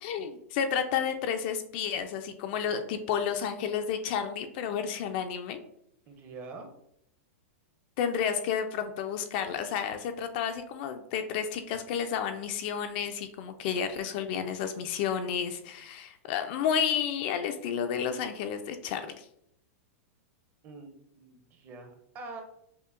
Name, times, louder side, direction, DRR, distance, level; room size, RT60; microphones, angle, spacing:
voice 1, 0.0-5.6 8.0-19.3, left 7 dB, 45° left, 7 dB, 0.3 m, -31 dB
voice 2, 6.1-6.7 20.6-22.4, right 3 dB, 25° right, 4 dB, 0.6 m, -45 dB
5.3 x 2.1 x 2.4 m, 0.74 s
supercardioid pair, 155°, 8 cm